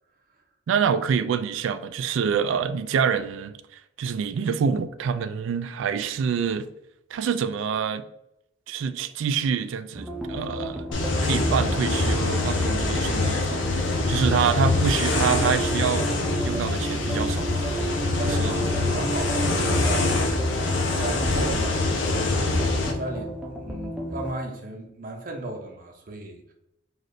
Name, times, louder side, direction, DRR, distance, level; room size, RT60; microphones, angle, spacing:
voice 1, 0.7-6.7 7.1-8.0 8.7-10.9 11.2-13.5 14.1-16.1 16.4-17.7 18.2-18.6, right 7 dB, 85° right, 0.3 m, -26 dB
sound 1, 9.9-24.3, equal, 5° right, 0.4 m, -32 dB
sound 2, 10.9-22.9, left 2 dB, 80° left, 0.6 m, -25 dB
voice 2, 18.1-22.5 22.9-26.5, right 2 dB, 45° right, 0.7 m, -36 dB
4.0 x 2.5 x 3.1 m
head